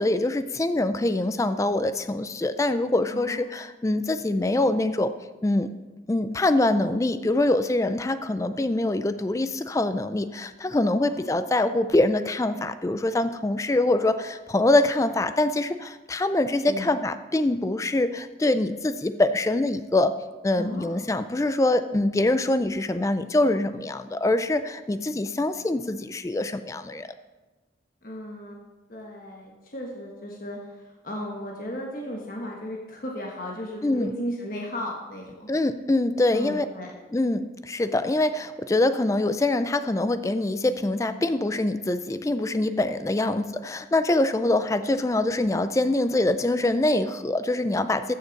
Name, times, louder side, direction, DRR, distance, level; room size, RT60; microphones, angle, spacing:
voice 1, 0.0-5.1 5.4-5.7 6.1-20.1 20.4-27.1 33.8-34.1 35.5-36.7 37.1-48.1, left 2 dB, 15° left, 11 dB, 0.3 m, -24 dB
voice 2, 3.1-3.5 11.0-11.3 16.7-16.9 20.6-21.0 28.0-28.6 28.9-35.5 36.3-36.9 43.2-43.3, equal, 50° left, -1 dB, 1.2 m, -35 dB
14.0 x 6.5 x 4.0 m, 1.2 s
head